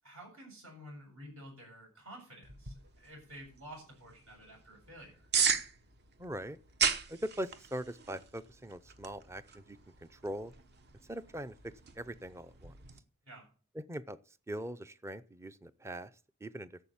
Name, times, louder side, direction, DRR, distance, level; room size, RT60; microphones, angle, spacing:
voice 1, 0.0-5.3 13.2-13.5, equal, 65° right, 7.4 m, -51 dB
sound 1, 2.4-13.0, right 6 dB, 50° right, 1.1 m, -38 dB
voice 2, 6.2-6.6 7.1-10.5 11.1-12.8 13.7-16.1 16.4-16.8, right 1 dB, 10° right, 0.5 m, -42 dB
11.5 x 7.2 x 8.5 m
head